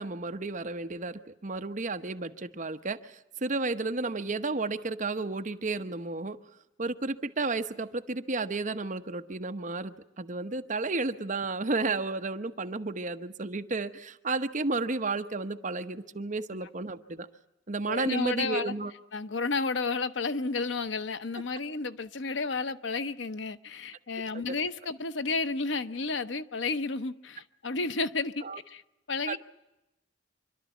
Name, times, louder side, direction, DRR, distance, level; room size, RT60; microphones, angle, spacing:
voice 1, 0.0-6.4 6.8-17.3 17.7-18.9 24.5-24.6 28.4-28.6 29.3-29.4, right 3 dB, 40° right, 1.0 m, -32 dB
voice 2, 17.9-18.7 19.1-28.3 28.7-28.8 29.1-29.4, left 4 dB, 75° left, 0.8 m, -32 dB
26.0 x 12.5 x 9.2 m
head